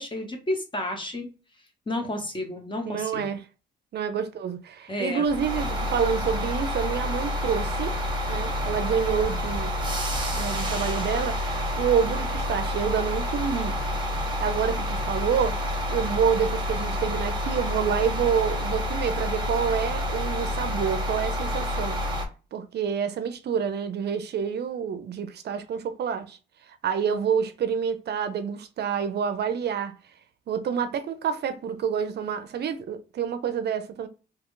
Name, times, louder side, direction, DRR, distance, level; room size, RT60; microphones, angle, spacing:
voice 1, 0.0-1.3 1.9-3.2 4.9-5.3, left 1 dB, 25° left, 1.1 m, -31 dB
voice 2, 2.8-3.4 3.9-8.0 8.3-9.8 10.3-13.8 14.4-15.6 15.9-22.0 22.5-30.0 30.5-34.1, right 7 dB, 55° right, 0.5 m, -28 dB
sound 1, 5.2-22.3, left 1 dB, 25° right, 1.1 m, -28 dB
2.9 x 2.3 x 3.7 m
cardioid pair, 90°, 20 cm